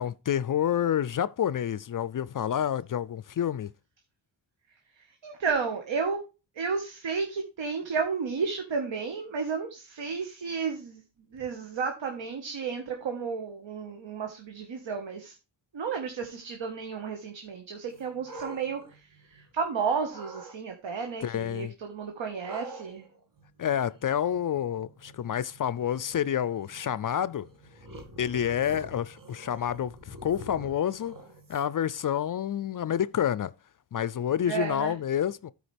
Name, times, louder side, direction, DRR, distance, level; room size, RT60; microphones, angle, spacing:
voice 1, 0.0-3.7 21.2-21.7 23.6-27.5 28.2-31.2 31.5-33.5 33.9-35.5, left 9 dB, 45° left, 0.4 m, -28 dB
voice 2, 5.2-6.2 6.6-11.0 11.3-15.3 15.7-19.0 19.3-23.0 34.5-34.9, right 5 dB, 75° right, 1.5 m, -32 dB
sound 1, 17.9-19.6 20.0-20.6 22.4-31.9, right 1 dB, 45° right, 2.1 m, -47 dB
13.0 x 4.9 x 3.4 m
cardioid pair, 80°, 45 cm